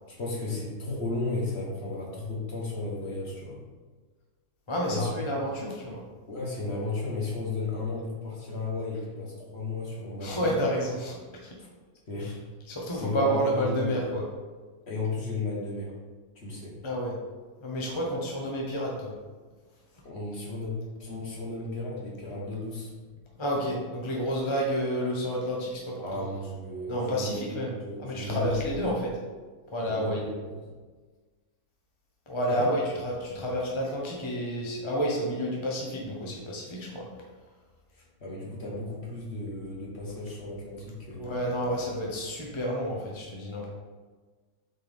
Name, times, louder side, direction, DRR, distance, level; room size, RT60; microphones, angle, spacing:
voice 1, 0.1-3.6 4.9-5.1 6.3-10.6 11.6-11.7 12.1-12.4 12.9-14.0 14.9-15.9 16.3-16.8 20.0-22.9 26.0-28.8 29.8-30.7 32.5-32.7 37.9-41.5, left 3 dB, 45° left, -4 dB, 1.6 m, -34 dB
voice 2, 4.7-6.0 10.2-11.2 11.4-11.5 12.2-12.3 12.7-14.2 16.8-17.2 17.6-19.1 23.4-26.0 26.9-27.7 28.0-29.1 29.7-30.2 32.3-37.1 41.2-43.7, equal, 20° left, -2 dB, 0.9 m, -30 dB
7.7 x 4.5 x 3.6 m, 1.4 s
omnidirectional pair, 1.6 m